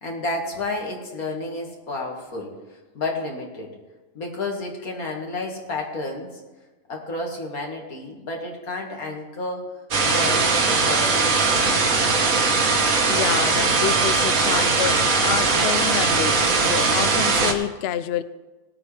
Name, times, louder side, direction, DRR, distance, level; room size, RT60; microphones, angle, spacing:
voice 1, 0.0-3.7 4.1-6.4 6.9-9.7 10.0-12.0 16.4-16.7, left 2 dB, 90° left, 0 dB, 2.4 m, -31 dB
sound 1, 9.9-17.5, right 4 dB, 75° right, 1.6 m, -20 dB
voice 2, 13.1-18.2, left 10 dB, 65° left, 13 dB, 0.7 m, -28 dB
19.0 x 8.7 x 3.3 m, 1.2 s
omnidirectional pair, 1.5 m